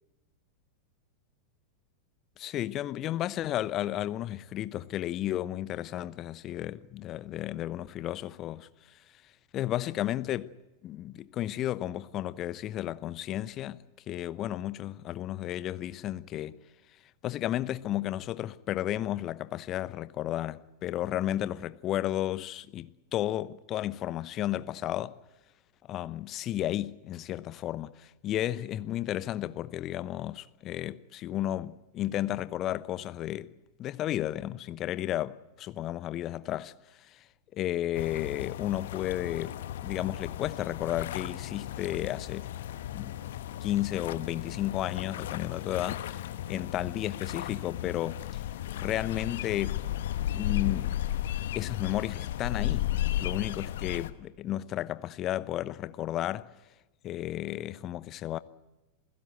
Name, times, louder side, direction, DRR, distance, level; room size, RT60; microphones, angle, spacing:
voice 1, 2.4-8.7 9.5-10.5 10.8-16.6 17.2-25.2 25.9-33.5 33.8-36.7 37.0-37.2 37.5-42.5 42.9-43.2 43.6-48.4 48.7-49.8 50.3-50.9 51.5-52.9 53.2-56.5 57.0-58.4, left 13 dB, 35° left, 0.8 m, -33 dB
sound 1, 38.0-54.1, left 12 dB, 55° left, 1.1 m, -35 dB
28.0 x 16.5 x 8.0 m
figure-of-eight pair, 90°, 0 cm